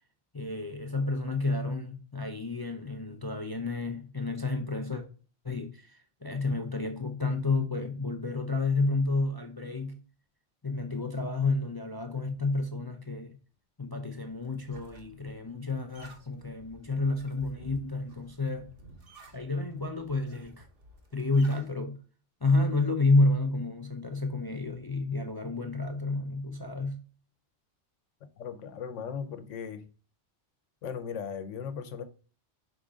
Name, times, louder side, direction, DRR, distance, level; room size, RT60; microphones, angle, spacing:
voice 1, 0.3-5.0 5.4-10.0 10.6-13.4 13.8-18.7 19.3-20.7 21.1-22.0 22.4-27.0, left 3 dB, 35° left, 0.4 m, -30 dB
sound 1, 14.2-21.7, right 1 dB, 50° right, 1.3 m, -54 dB
voice 2, 28.4-29.8 30.8-32.0, left 7 dB, 90° left, 1.0 m, -37 dB
5.8 x 3.6 x 4.9 m
omnidirectional pair, 1.2 m